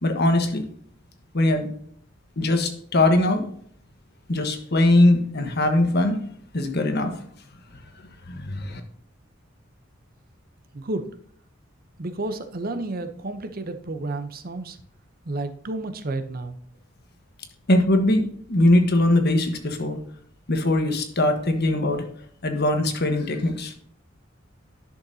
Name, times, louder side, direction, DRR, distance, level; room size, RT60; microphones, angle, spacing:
voice 1, 0.0-0.6 1.3-1.7 2.4-3.5 4.3-6.2 6.5-7.1 8.3-8.8 17.7-20.0 20.5-22.0 22.4-23.7, left 1 dB, 55° left, 6 dB, 1.3 m, -21 dB
voice 2, 10.7-11.1 12.0-14.8 15.3-16.6, right 2 dB, 45° right, 10 dB, 0.8 m, -31 dB
11.0 x 6.5 x 2.7 m, 0.62 s
head